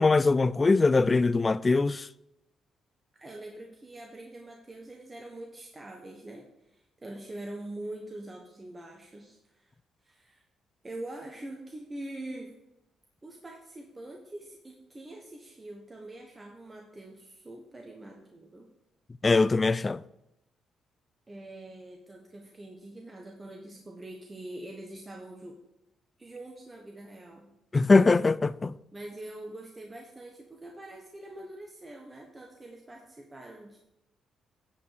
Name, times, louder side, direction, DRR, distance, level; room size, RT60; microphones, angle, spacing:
voice 1, 0.0-2.1 19.2-20.0 27.7-28.7, left 3 dB, 25° left, 0.3 m, -22 dB
voice 2, 3.2-9.7 10.0-10.4 10.8-12.6 13.2-18.7 21.3-25.6 26.2-27.5 28.9-33.8, right 1 dB, 20° right, 1.3 m, -44 dB
10.0 x 5.2 x 6.4 m
cardioid pair, 90°, 0 cm